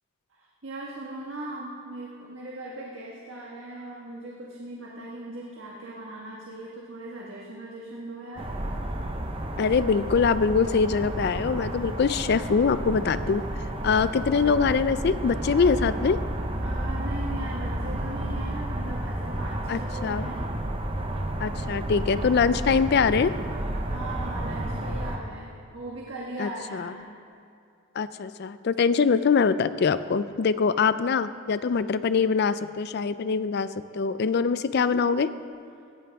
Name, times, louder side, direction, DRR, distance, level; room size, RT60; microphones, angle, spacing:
voice 1, 0.3-8.5 16.6-20.5 23.6-27.1, right 1 dB, 65° right, -4 dB, 1.5 m, -39 dB
sound 1, 8.4-25.2, right 1 dB, 25° right, 0.8 m, -31 dB
voice 2, 9.6-13.4 13.8-16.2 19.7-20.2 21.4-23.3 26.4-26.9 28.0-35.3, left 5 dB, 50° left, 14 dB, 0.4 m, -23 dB
17.0 x 11.0 x 3.5 m, 2.5 s
head